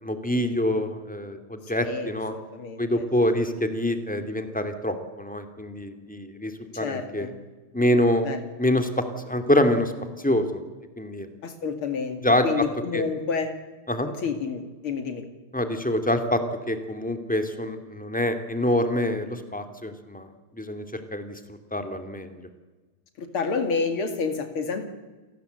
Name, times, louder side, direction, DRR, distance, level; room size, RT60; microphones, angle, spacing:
voice 1, 0.0-2.3 2.8-7.3 7.7-8.3 8.6-9.9 10.2-10.6 11.0-11.3 12.2-12.6 12.9-13.0 13.9-14.1 15.5-16.4 16.7-20.3 20.5-21.4 21.7-22.3, left 1 dB, 5° left, 7 dB, 2.2 m, -25 dB
voice 2, 1.7-3.0 6.7-7.3 8.2-8.4 11.4-13.5 14.2-15.2 23.2-24.9, left 5 dB, 75° left, 7 dB, 3.1 m, -29 dB
28.5 x 19.0 x 8.1 m, 1.3 s
omnidirectional pair, 2.4 m